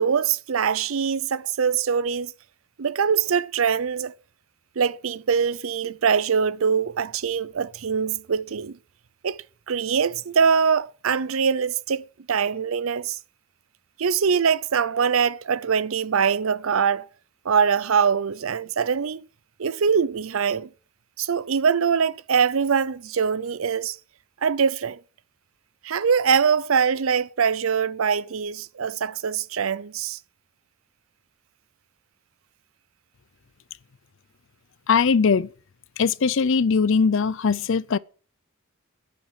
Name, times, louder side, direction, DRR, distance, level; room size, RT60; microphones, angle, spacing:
voice 1, 0.0-2.3 2.8-4.1 4.8-8.8 9.2-9.4 9.7-13.2 14.0-17.1 17.4-19.3 19.6-20.7 21.2-24.0 24.4-25.0 25.8-30.2, right 6 dB, 75° right, 0.6 m, -23 dB
voice 2, 34.9-35.5 36.0-38.0, left 5 dB, 65° left, 0.5 m, -20 dB
11.0 x 9.3 x 7.5 m
head